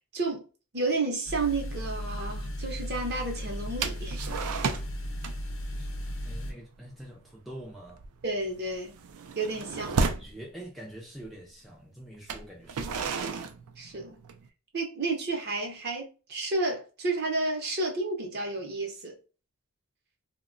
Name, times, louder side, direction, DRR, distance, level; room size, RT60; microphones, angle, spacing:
voice 1, 0.1-0.4 0.7-4.4 8.2-9.0 9.3-10.0 13.8-14.2 14.7-19.1, right 2 dB, 45° right, 0.6 m, -31 dB
sound 1, 1.3-6.5, equal, 60° left, 0.5 m, -35 dB
sound 2, 3.8-5.0 5.2-5.5 5.8-6.1 6.5-6.7 7.0-7.3 7.7-10.3 11.2-11.3 12.1-14.5, right 4 dB, 85° right, 0.4 m, -33 dB
voice 2, 6.2-8.0 10.0-13.3, right 1 dB, ahead, 0.3 m, -45 dB
2.8 x 2.1 x 2.4 m
head